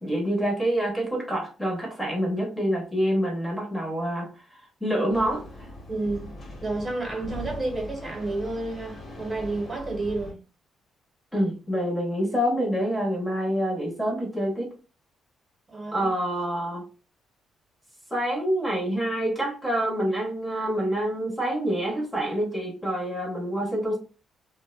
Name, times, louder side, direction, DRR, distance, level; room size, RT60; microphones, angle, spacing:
voice 1, 0.0-4.3 4.8-5.5 11.3-14.7 15.9-16.8 18.1-24.0, equal, 5° left, 0.8 m, -26 dB
sound 1, 5.1-10.3, left 2 dB, 50° left, 1.0 m, -41 dB
voice 2, 5.9-10.4 15.7-16.1, right 2 dB, 30° right, 1.0 m, -31 dB
2.4 x 2.1 x 2.4 m
cardioid pair, 90°, 0 cm